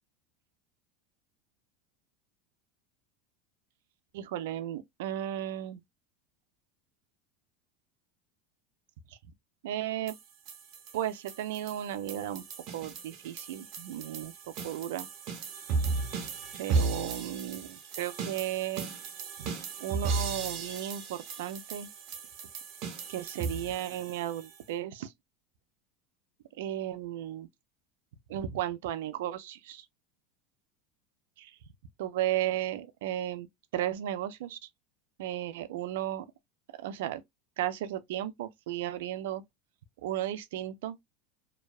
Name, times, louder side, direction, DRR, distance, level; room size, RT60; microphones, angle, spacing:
voice 1, 4.1-5.8 9.1-9.2 9.6-10.1 10.9-12.4 12.7-14.3 14.6-15.1 16.6-18.9 19.4-19.5 19.8-21.9 23.1-25.1 26.6-27.5 28.3-29.9 31.4-31.6 32.0-33.5 33.7-34.6 35.2-36.3 36.8-37.2 37.6-39.4 40.0-41.0, right 12 dB, 80° right, 0.4 m, -34 dB
sound 1, 10.1-24.6, right 4 dB, 55° right, 0.9 m, -36 dB
2.6 x 2.1 x 2.3 m
hypercardioid pair, 105°, 0 cm